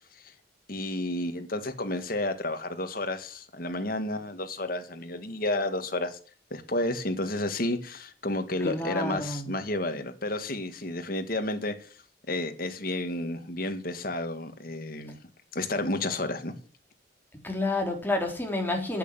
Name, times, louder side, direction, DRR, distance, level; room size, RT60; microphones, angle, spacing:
voice 1, 0.7-6.2 6.5-11.9 12.3-15.2 15.5-16.5, left 2 dB, 50° left, 2.0 m, -31 dB
voice 2, 8.6-9.5 17.4-19.0, left 2 dB, 10° left, 3.6 m, -29 dB
10.0 x 9.2 x 9.1 m
head